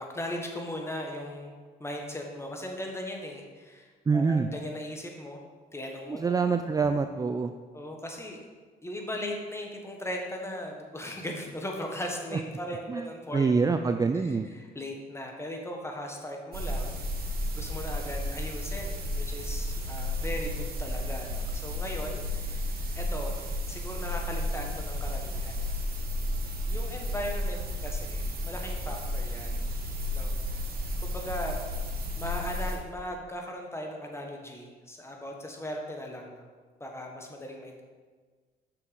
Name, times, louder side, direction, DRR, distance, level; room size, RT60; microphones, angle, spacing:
voice 1, 0.0-5.4 5.7-6.3 7.7-8.4 8.8-13.4 14.1-17.0 17.5-25.6 26.7-29.7 30.1-30.6 31.0-31.6 32.2-36.5 36.8-37.8, left 1 dB, 15° left, 1 dB, 1.5 m, -38 dB
voice 2, 4.1-4.5 6.1-7.5 12.9-13.1 13.3-14.5, right 4 dB, 20° right, 7 dB, 0.3 m, -25 dB
sound 1, 16.5-32.8, left 1 dB, 60° right, 1.6 m, -32 dB
6.3 x 5.8 x 5.2 m, 1.5 s
cardioid pair, 80°, 18 cm